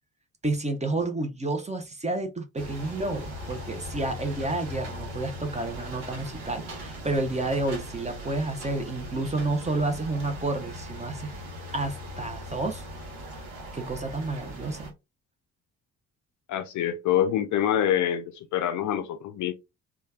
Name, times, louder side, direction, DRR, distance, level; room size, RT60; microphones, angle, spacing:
voice 1, 0.4-11.3 11.7-12.8 13.7-14.9, right 2 dB, 15° right, 0.7 m, -30 dB
sound 1, 2.6-14.9, equal, 65° right, 1.1 m, -39 dB
voice 2, 16.5-19.5, left 10 dB, 45° left, 0.6 m, -26 dB
3.2 x 2.3 x 3.5 m
figure-of-eight pair, 40°, 43 cm